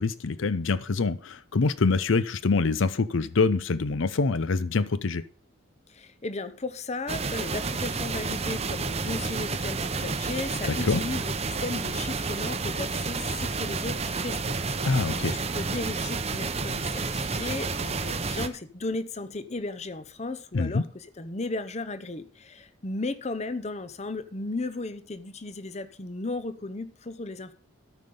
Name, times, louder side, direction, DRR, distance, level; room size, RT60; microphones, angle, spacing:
voice 1, 0.0-5.2 10.7-11.0 14.8-15.4 20.5-20.8, left 4 dB, 65° left, 0.6 m, -25 dB
voice 2, 5.9-11.3 11.6-27.5, left 3 dB, 30° left, 0.7 m, -35 dB
sound 1, 7.1-18.5, right 4 dB, 30° right, 0.7 m, -30 dB
13.5 x 5.4 x 6.8 m
head